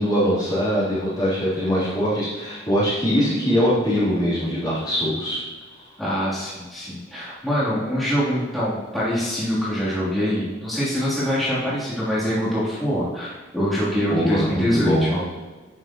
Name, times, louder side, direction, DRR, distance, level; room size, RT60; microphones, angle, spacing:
voice 1, 0.0-5.4 14.1-15.2, equal, 20° left, -10 dB, 3.4 m, -22 dB
voice 2, 6.0-15.1, equal, ahead, -12 dB, 3.2 m, -24 dB
11.0 x 9.4 x 3.0 m, 1.3 s
head